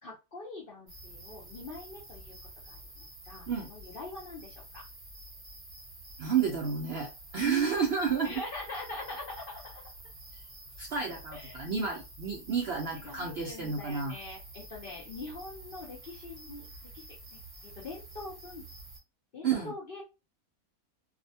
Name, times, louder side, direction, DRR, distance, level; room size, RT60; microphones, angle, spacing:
voice 1, 0.0-2.4 2.6-4.8 8.2-9.8 11.3-11.6 12.9-17.4 17.8-18.6 19.3-20.0, left 2 dB, 55° left, -3 dB, 0.6 m, -44 dB
sound 1, 0.9-19.0, right 1 dB, 25° right, 0.9 m, -49 dB
voice 2, 6.2-8.4 10.3-10.4 10.8-14.1 19.4-19.7, right 6 dB, 70° right, 0 dB, 0.6 m, -31 dB
2.6 x 2.1 x 2.7 m, 0.28 s
omnidirectional pair, 1.6 m